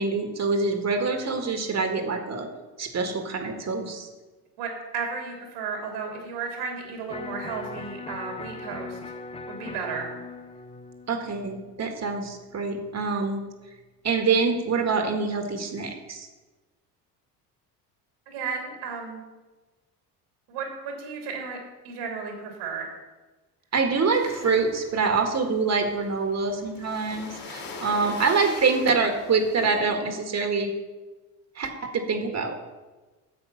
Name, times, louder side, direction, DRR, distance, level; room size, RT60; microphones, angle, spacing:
voice 1, 0.0-2.5 2.8-4.1 11.1-13.4 14.0-16.3 23.7-30.7 31.5-32.6, right 4 dB, 35° right, 5 dB, 1.7 m, -25 dB
voice 2, 4.6-9.0 9.5-10.1 18.3-19.2 20.5-21.6 21.8-22.9, right 5 dB, 70° right, 1 dB, 2.8 m, -33 dB
Electric guitar, 7.1-13.1, left 3 dB, 15° left, 0.6 m, -40 dB
sound 1, 24.1-29.8, left 4 dB, 45° left, 2.8 m, -42 dB
8.8 x 7.6 x 5.7 m, 1.2 s
hypercardioid pair, 65°, 46 cm